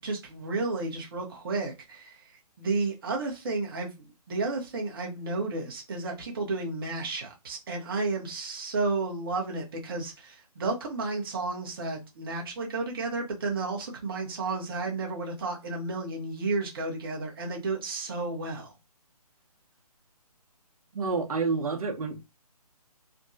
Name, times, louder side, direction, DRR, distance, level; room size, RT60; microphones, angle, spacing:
voice 1, 0.0-2.2 2.6-18.7, right 3 dB, 35° right, 1.0 m, -32 dB
voice 2, 20.9-22.3, right 4 dB, 65° right, 1.0 m, -29 dB
3.4 x 2.2 x 2.6 m
hypercardioid pair, 165°, 20 cm